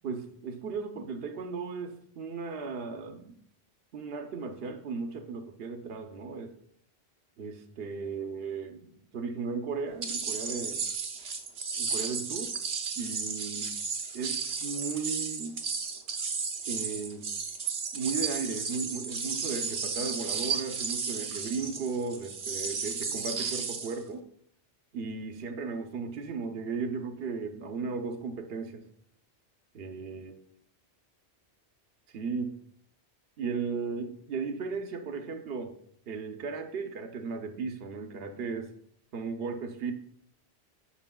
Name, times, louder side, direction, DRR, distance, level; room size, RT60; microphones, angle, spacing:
voice 1, 0.0-3.3 3.9-6.5 7.4-10.8 11.8-12.5 13.0-13.7 14.1-15.6 16.7-17.2 17.9-24.3 24.9-28.9 29.7-30.4 32.1-32.5 33.4-35.7 36.1-38.7 39.1-39.9, right 4 dB, 65° right, 5 dB, 1.0 m, -36 dB
sound 1, 10.0-24.0, right 5 dB, 85° right, 1.3 m, -34 dB
11.5 x 6.5 x 2.3 m, 0.66 s
omnidirectional pair, 1.1 m